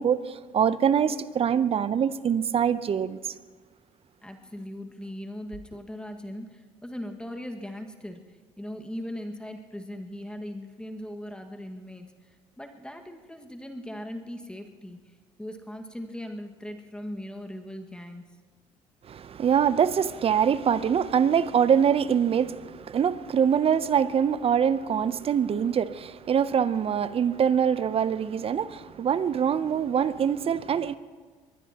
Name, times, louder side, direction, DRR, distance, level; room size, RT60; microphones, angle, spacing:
voice 1, 0.0-3.3 19.1-31.0, right 8 dB, 45° right, 0.7 m, -24 dB
voice 2, 4.2-18.2, left 1 dB, 5° left, 1.8 m, -39 dB
22.5 x 20.5 x 3.0 m
hypercardioid pair, 60°, 13 cm